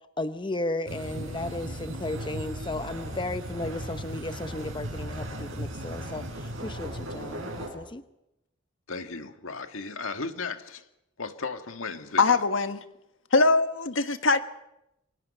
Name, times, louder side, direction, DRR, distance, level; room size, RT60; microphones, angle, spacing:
voice 1, 0.2-8.0, left 2 dB, 25° left, 10 dB, 0.8 m, -34 dB
sound 1, 0.9-7.7, right 1 dB, 85° right, 7.3 m, -36 dB
voice 2, 8.9-10.8 11.2-12.4, left 4 dB, 85° left, 7 dB, 1.8 m, -35 dB
voice 3, 12.2-12.8 13.3-14.4, left 3 dB, 70° left, 9 dB, 1.5 m, -22 dB
27.5 x 24.0 x 5.5 m, 0.88 s
head